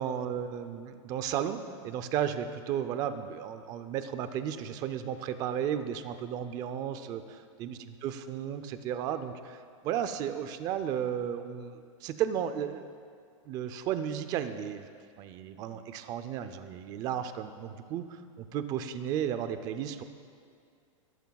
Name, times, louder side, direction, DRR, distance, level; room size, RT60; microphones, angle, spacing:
voice 1, 0.0-12.9 13.5-14.9 15.2-20.0, right 9 dB, 20° right, 10 dB, 0.5 m, -34 dB
24.5 x 14.0 x 2.3 m, 2.2 s
supercardioid pair, 170°, 17 cm